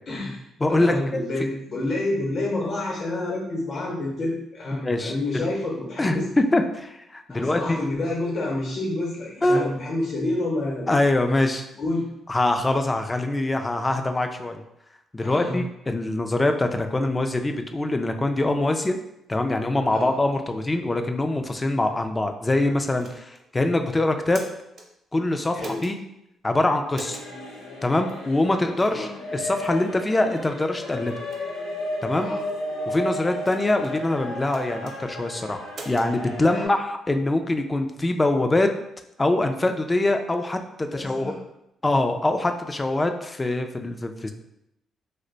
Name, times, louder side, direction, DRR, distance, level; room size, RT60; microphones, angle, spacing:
voice 1, 0.1-0.4 0.7-6.3 7.3-10.9 11.8-12.1 15.2-15.6 19.9-20.1 25.5-25.8 28.9-29.1 32.1-32.4 36.5-36.7 40.9-41.4, left 2 dB, 55° left, -2 dB, 0.8 m, -28 dB
voice 2, 0.6-1.2 4.7-5.5 6.0-7.8 9.4-9.7 10.9-11.7 12.3-14.6 15.1-19.0 19.3-24.4 25.1-26.0 26.4-27.2 27.8-31.1 32.0-32.3 32.9-38.7 39.2-41.3 41.8-44.3, left 2 dB, 20° left, 6 dB, 0.3 m, -24 dB
sound 1, 23.0-23.4 24.1-24.9 25.6-25.9 26.9-27.3 28.1-28.2 28.8-29.0 29.6-29.8 30.4-30.5 31.1-31.4 32.2-32.6 33.4-34.0 34.5-35.0 35.7-36.1, right 2 dB, 55° right, 0.6 m, -42 dB
sound 2, 26.9-36.7, left 1 dB, 85° left, 0.7 m, -34 dB
2.8 x 2.1 x 3.9 m, 0.83 s
cardioid pair, 90°, 0 cm